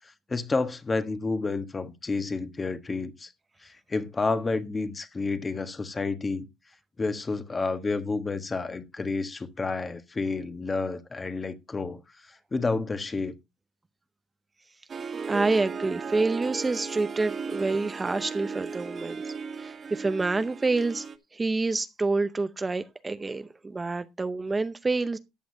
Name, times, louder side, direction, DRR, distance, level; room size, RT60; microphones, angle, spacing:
voice 1, 0.3-3.3 3.6-6.5 7.0-12.0 12.5-13.3, left 3 dB, 20° left, 1.3 m, -30 dB
Harp, 14.9-21.2, right 5 dB, 35° right, 1.4 m, -36 dB
voice 2, 15.3-21.1 21.3-25.2, right 3 dB, 20° right, 0.7 m, -28 dB
14.0 x 9.4 x 2.7 m
cardioid pair, 120°, 0 cm